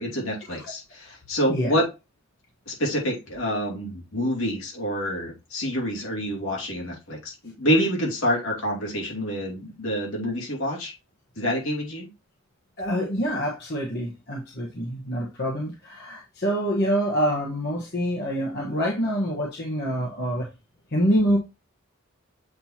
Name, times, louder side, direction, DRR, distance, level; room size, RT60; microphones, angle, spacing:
voice 1, 0.0-1.8 2.7-10.9 11.3-12.1, equal, 75° left, 2.8 m, -27 dB
voice 2, 1.5-1.8 12.8-20.5 20.9-21.4, equal, 50° left, 1.2 m, -26 dB
7.8 x 4.3 x 2.8 m
head